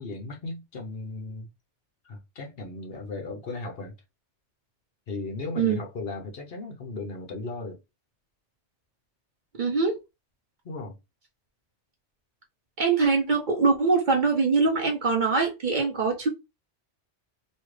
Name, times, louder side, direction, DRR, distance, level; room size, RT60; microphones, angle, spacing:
voice 1, 0.0-1.5 2.0-3.9 5.1-7.8 10.6-11.0, left 3 dB, 55° left, 1.0 m, -36 dB
voice 2, 9.6-9.9 12.8-16.3, right 4 dB, 45° right, 0.8 m, -23 dB
3.1 x 2.4 x 3.1 m
omnidirectional pair, 1.2 m